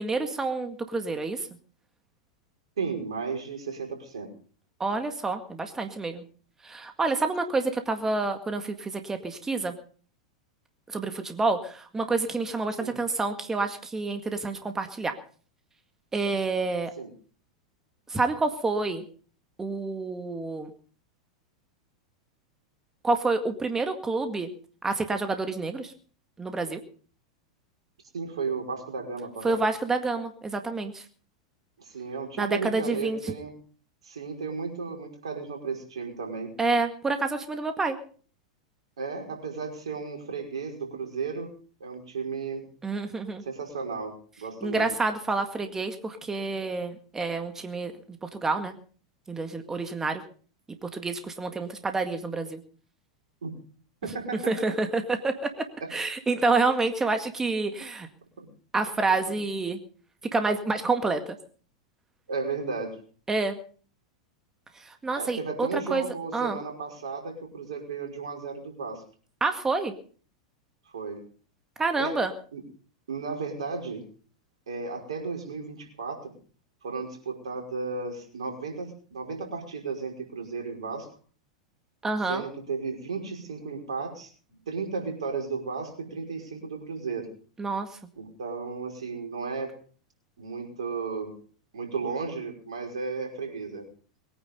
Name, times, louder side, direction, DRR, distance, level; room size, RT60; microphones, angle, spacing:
voice 1, 0.0-1.5 4.8-6.2 6.6-9.7 10.9-15.2 16.1-16.9 18.1-19.0 19.6-20.7 23.0-24.5 24.8-25.9 26.4-26.8 29.4-31.1 32.4-33.3 36.6-38.0 42.8-43.4 44.6-48.7 49.3-50.2 50.8-52.6 54.5-55.5 55.9-58.1 58.7-59.8 60.3-61.4 63.3-63.6 64.7-66.0 66.3-66.6 69.4-69.9 71.8-72.3 82.0-82.4 87.6-88.0, right 3 dB, 15° right, 7 dB, 1.9 m, -28 dB
voice 2, 2.8-4.3 12.8-13.0 17.0-17.1 28.1-29.6 31.8-33.5 34.0-36.5 39.0-41.5 41.8-42.7 43.5-44.9 53.4-53.5 54.0-54.5 55.8-55.9 58.4-58.5 62.3-63.0 65.2-69.0 70.9-71.2 72.0-72.2 72.5-72.6 73.1-74.0 74.7-76.3 76.8-81.1 82.3-87.3 88.2-89.8 90.4-91.4 91.7-93.9, right 4 dB, 75° right, 2 dB, 5.5 m, -34 dB
22.0 x 9.9 x 5.4 m, 0.43 s
hypercardioid pair, 95°, 3 cm